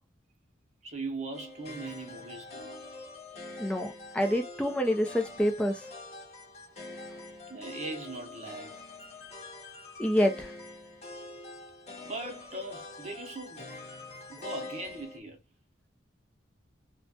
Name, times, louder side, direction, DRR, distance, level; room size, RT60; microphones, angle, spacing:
voice 1, 0.8-2.8 7.5-8.8 12.0-13.7 14.3-15.4, right 2 dB, 35° right, 0.9 m, -40 dB
sound 1, 1.3-15.2, left 2 dB, 35° left, 0.9 m, -45 dB
voice 2, 3.6-5.8 10.0-10.5, equal, 5° left, 0.6 m, -27 dB
3.1 x 2.2 x 2.8 m
head